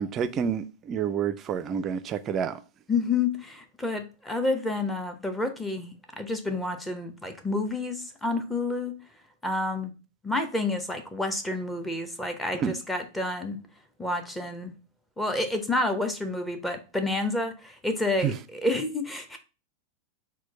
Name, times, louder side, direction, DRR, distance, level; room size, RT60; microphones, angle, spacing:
voice 1, 0.0-2.6 12.6-12.7 18.2-18.3, right 7 dB, 30° right, 0.4 m, -28 dB
voice 2, 2.9-8.9 9.4-9.9 10.2-13.6 14.0-14.7 15.2-19.4, left 2 dB, 10° left, 0.8 m, -29 dB
6.1 x 2.2 x 4.0 m
figure-of-eight pair, 90°, 0 cm